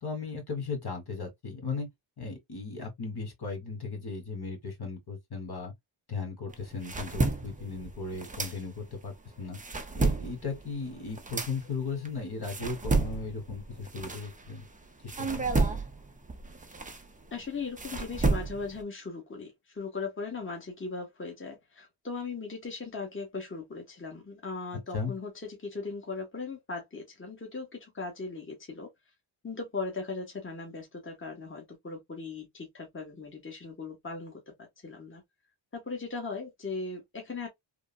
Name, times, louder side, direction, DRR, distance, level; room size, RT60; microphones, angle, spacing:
voice 1, 0.0-1.9 2.2-5.7 6.1-9.6 9.9-14.7 15.0-15.5 24.9-25.1, left 4 dB, 50° left, 1.5 m, -36 dB
sound 1, 6.5-9.0 9.4-14.7 15.1-18.8, right 3 dB, 15° right, 0.5 m, -31 dB
voice 2, 17.3-28.9 29.4-34.5 34.8-35.2 35.7-37.5, left 4 dB, 25° left, 1.2 m, -38 dB
3.5 x 2.1 x 2.3 m
wide cardioid pair, 95°, 49 cm